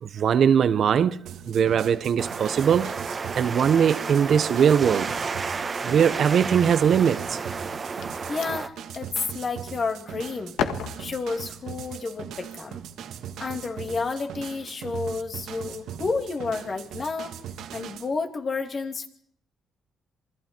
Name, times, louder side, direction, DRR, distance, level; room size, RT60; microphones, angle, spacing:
voice 1, 0.0-3.0 3.3-5.1 5.8-7.4, right 8 dB, 60° right, 1.0 m, -21 dB
sound 1, 1.3-18.1, right 9 dB, 80° right, 1.8 m, -39 dB
sound 2, 2.2-8.7, right 5 dB, 35° right, 1.5 m, -32 dB
sound 3, 5.7-7.2 7.7-10.1 10.4-11.5 12.4-12.7 13.8-14.0 14.8-15.1 15.7-15.8 16.1-17.1, left 8 dB, 85° left, 1.7 m, -38 dB
voice 2, 8.3-10.6 11.0-12.8 13.4-17.4 17.7-19.1, left 4 dB, 40° left, 2.8 m, -30 dB
27.0 x 21.0 x 4.6 m
cardioid pair, 90°, 0 cm